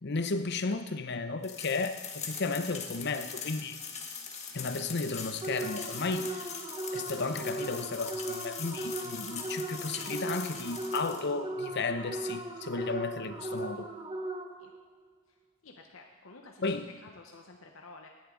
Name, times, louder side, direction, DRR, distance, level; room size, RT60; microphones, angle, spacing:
voice 1, 0.0-3.8 4.5-6.5 6.9-13.9 16.6-16.9, left 3 dB, 55° left, 10 dB, 0.8 m, -34 dB
sound 1, 1.4-11.2, left 6 dB, 35° left, 1.3 m, -42 dB
sound 2, 5.4-14.8, right 2 dB, 25° right, 0.9 m, -38 dB
voice 2, 15.6-18.1, left 3 dB, 80° left, 2 dB, 1.0 m, -52 dB
18.0 x 10.5 x 3.9 m, 1.3 s
head